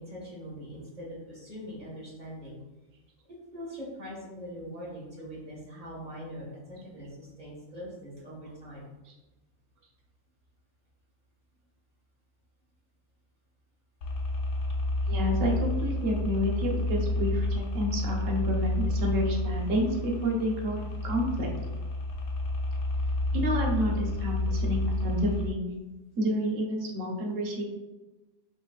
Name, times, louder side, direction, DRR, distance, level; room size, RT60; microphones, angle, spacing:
voice 1, 0.0-2.6 3.5-8.9, equal, 30° right, -5 dB, 1.7 m, -42 dB
sound 1, 14.0-25.5, left 1 dB, 80° left, 1.2 m, -30 dB
voice 2, 15.1-21.5 23.3-25.6 26.2-27.7, equal, 65° right, 0 dB, 1.3 m, -29 dB
6.0 x 3.5 x 2.4 m, 1.1 s
omnidirectional pair, 1.5 m